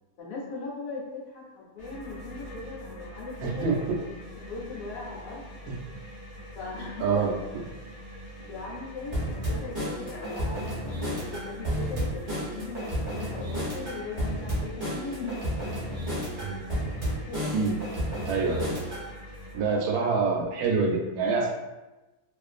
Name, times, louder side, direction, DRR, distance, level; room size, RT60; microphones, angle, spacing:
voice 1, 0.2-3.8 4.4-5.5 6.5-7.2 8.4-15.4 15.9-16.0 17.0-17.8, left 3 dB, 70° left, -5 dB, 1.0 m, -39 dB
sound 1, 1.8-19.6, equal, 40° left, 0.7 m, -44 dB
voice 2, 3.4-4.0 5.7-5.8 7.0-7.4 16.4-16.6 17.5-17.8 18.3-18.7 19.5-21.5, right 4 dB, 80° right, 0 dB, 1.1 m, -26 dB
sound 2, 9.1-19.1, equal, 30° right, 0.6 m, -31 dB
2.4 x 2.4 x 2.4 m, 1.1 s
omnidirectional pair, 1.6 m